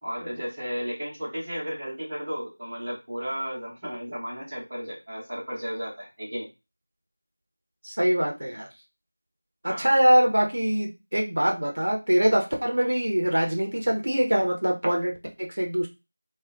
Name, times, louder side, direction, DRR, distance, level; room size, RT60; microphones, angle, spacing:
voice 1, 0.0-6.5 9.6-9.9, equal, 15° right, -10 dB, 0.9 m, -34 dB
voice 2, 7.8-8.7 9.6-15.9, right 1 dB, 60° right, 1 dB, 0.6 m, -23 dB
3.1 x 2.1 x 2.5 m, 0.26 s
figure-of-eight pair, 180°, 0 cm